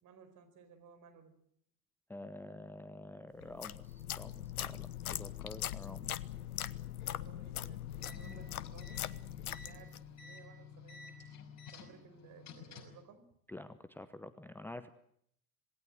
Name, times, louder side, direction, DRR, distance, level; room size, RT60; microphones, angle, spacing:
voice 1, 0.0-1.3 5.1-5.2 5.6-5.8 7.0-9.0 9.6-11.3 11.7-13.3, right 6 dB, 40° right, 7 dB, 4.8 m, -59 dB
voice 2, 2.1-6.2 8.1-8.4 13.5-14.9, left 2 dB, 5° left, 13 dB, 0.9 m, -48 dB
sound 1, 3.4-10.1, left 12 dB, 65° left, 1.0 m, -41 dB
sound 2, 7.9-13.0, left 5 dB, 35° left, 5.5 m, -52 dB
27.0 x 19.0 x 7.9 m, 0.70 s
figure-of-eight pair, 75°, 47 cm